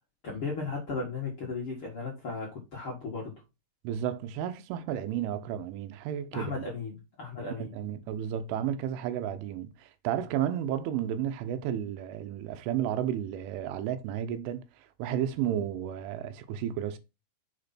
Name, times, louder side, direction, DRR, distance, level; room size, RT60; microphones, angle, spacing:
voice 1, 0.2-3.4 6.3-7.7, left 4 dB, 55° left, 1.5 m, -36 dB
voice 2, 3.9-6.7 7.6-17.0, right 10 dB, 90° right, 3.3 m, -32 dB
6.9 x 5.3 x 4.2 m
omnidirectional pair, 5.5 m